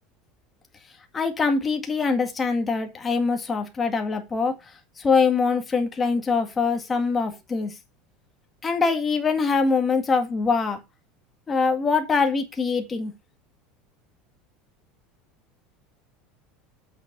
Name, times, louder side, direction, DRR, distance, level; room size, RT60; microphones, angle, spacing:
voice 1, 1.1-7.7 8.6-10.8 11.5-13.1, left 4 dB, 20° left, 5 dB, 2.0 m, -23 dB
8.1 x 6.4 x 5.7 m, 0.24 s
supercardioid pair, 145°, 0 cm